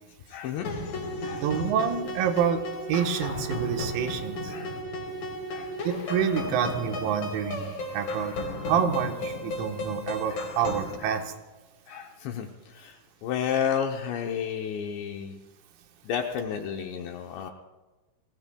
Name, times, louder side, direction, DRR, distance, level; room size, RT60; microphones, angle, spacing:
voice 1, 0.3-1.5 4.5-4.7 5.5-5.7 6.6-6.8 10.3-10.4 11.0-11.2 11.9-15.4 16.0-17.5, left 8 dB, 75° left, 3 dB, 2.7 m, -32 dB
sound 1, 0.6-11.0, left 1 dB, 45° left, 4.4 m, -34 dB
voice 2, 1.4-2.6 2.9-4.5 5.9-8.3 8.7-11.2, right 8 dB, 90° right, 4 dB, 4.0 m, -27 dB
29.5 x 19.5 x 2.3 m, 1.2 s
omnidirectional pair, 5.9 m